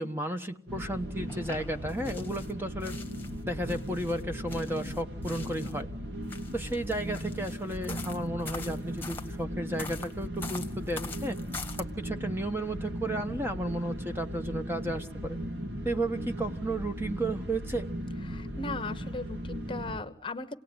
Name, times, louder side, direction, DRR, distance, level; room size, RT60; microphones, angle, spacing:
voice 1, 0.0-3.0 3.5-5.9 6.5-11.4 11.8-15.4 15.8-17.9, right 1 dB, 15° right, 6 dB, 1.0 m, -33 dB
sound 1, 0.7-20.0, equal, 75° right, 2.4 m, -37 dB
sound 2, 1.3-2.5 2.8-5.8 6.2-9.3 9.8-11.8, left 4 dB, 10° left, 1.5 m, -44 dB
voice 2, 18.2-20.6, left 3 dB, 30° left, 10 dB, 1.0 m, -38 dB
28.0 x 18.5 x 9.7 m, 0.67 s
head